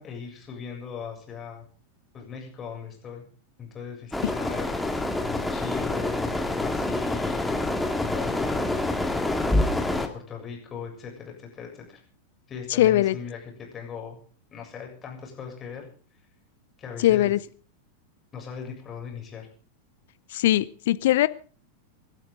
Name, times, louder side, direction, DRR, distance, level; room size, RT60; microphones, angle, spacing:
voice 1, 0.0-1.6 2.1-3.2 3.6-7.6 8.0-8.9 9.4-12.0 12.5-14.2 14.5-15.9 16.8-17.3 18.3-19.5, left 6 dB, 25° left, 1 dB, 7.5 m, -39 dB
sound 1, 4.1-10.1, left 2 dB, 5° left, 2.2 m, -27 dB
voice 2, 12.8-13.2 17.0-17.4 20.3-21.3, left 14 dB, 55° left, 17 dB, 0.8 m, -20 dB
27.5 x 12.0 x 3.9 m, 0.40 s
figure-of-eight pair, 90°, 0 cm